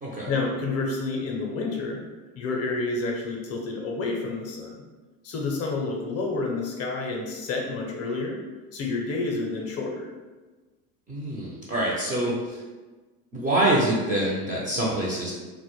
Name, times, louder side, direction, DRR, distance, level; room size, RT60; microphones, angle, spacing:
voice 1, 0.3-2.0 2.4-4.7 5.2-8.4 8.7-10.1, left 3 dB, 35° left, 0 dB, 0.5 m, -29 dB
voice 2, 11.1-12.6 13.3-15.3, right 1 dB, 20° right, -4 dB, 0.4 m, -25 dB
2.1 x 2.1 x 2.9 m, 1.3 s
hypercardioid pair, 90°, 44 cm